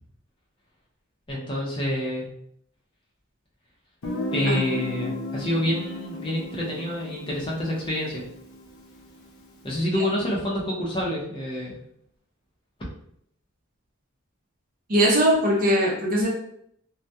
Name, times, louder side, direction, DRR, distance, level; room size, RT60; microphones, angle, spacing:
voice 1, 1.3-2.3 4.3-8.2 9.6-11.8, equal, 25° left, -4 dB, 0.6 m, -27 dB
Guitar, 4.0-9.6, left 1 dB, 65° left, 0.5 m, -35 dB
voice 2, 14.9-16.3, equal, 40° right, -2 dB, 0.6 m, -20 dB
2.2 x 2.1 x 2.7 m, 0.69 s
head